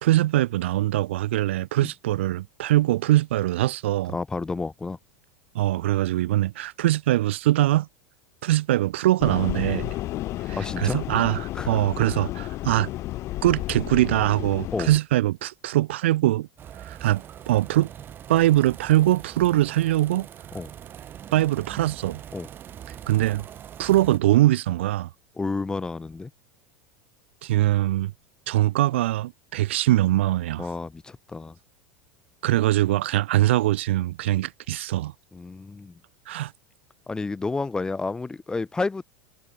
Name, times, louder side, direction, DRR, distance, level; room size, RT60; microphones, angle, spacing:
voice 1, 0.0-4.1 5.5-7.9 8.4-9.9 10.5-12.9 13.4-16.5 16.8-17.9 18.3-20.3 21.3-22.2 23.1-23.5 23.8-25.1 27.4-28.1 28.5-30.7 32.4-35.1 36.3-36.5, right 15 dB, 60° right, 0.4 m, -22 dB
voice 2, 4.1-5.0 10.5-11.0 11.5-11.7 14.7-14.9 20.5-20.7 22.3-22.5 25.4-26.3 30.6-31.6 35.3-36.0 37.1-39.0, left 3 dB, 10° left, 0.3 m, -30 dB
sound 1, 9.2-15.0, left 16 dB, 40° left, 1.0 m, -32 dB
sound 2, 16.6-24.2, right 10 dB, 30° right, 0.7 m, -42 dB
figure-of-eight pair, 80°, 7 cm